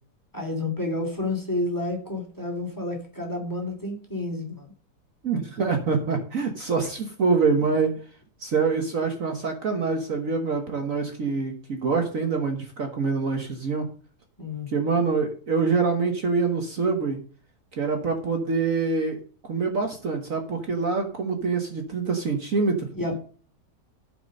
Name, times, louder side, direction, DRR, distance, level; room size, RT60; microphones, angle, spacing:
voice 1, 0.3-4.7 14.4-14.7 22.9-23.2, left 2 dB, 10° left, 2 dB, 2.8 m, -30 dB
voice 2, 5.2-8.0 8.4-13.9 14.7-17.2 17.7-19.2 19.5-22.9, right 4 dB, 50° right, 4 dB, 1.6 m, -25 dB
13.5 x 5.3 x 5.3 m, 0.43 s
omnidirectional pair, 1.9 m